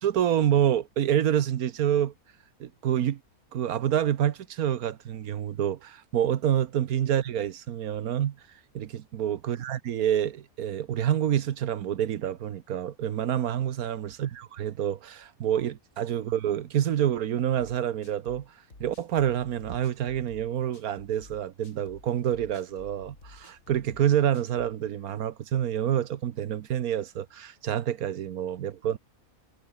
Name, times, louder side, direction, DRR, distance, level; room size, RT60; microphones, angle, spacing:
voice 1, 0.0-2.1 2.6-3.2 3.5-8.4 8.7-18.5 18.8-29.0, right 10 dB, 80° right, 1.4 m, -27 dB
sound 1, 17.6-24.8, left 2 dB, 60° left, 4.8 m, -52 dB
omnidirectional pair, 1.5 m